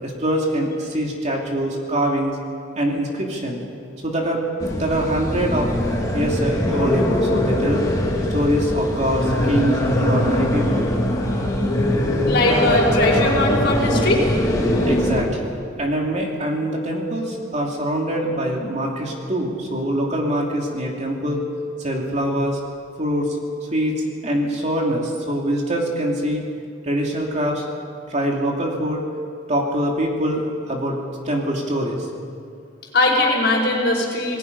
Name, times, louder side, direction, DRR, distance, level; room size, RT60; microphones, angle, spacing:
voice 1, 0.0-2.4 2.7-3.6 4.0-4.4 4.7-5.7 6.1-7.9 8.3-10.9 14.8-21.4 21.8-22.6 23.0-23.4 23.7-26.4 26.8-27.7 28.1-29.0 29.5-31.0 31.2-32.1, equal, 35° right, -1 dB, 2.8 m, -24 dB
sound 1, 4.6-15.2, left 1 dB, 15° left, 2.6 m, -21 dB
voice 2, 12.3-14.2 32.9-34.4, left 2 dB, 55° left, -2 dB, 5.0 m, -19 dB
28.0 x 19.5 x 5.5 m, 2.5 s
head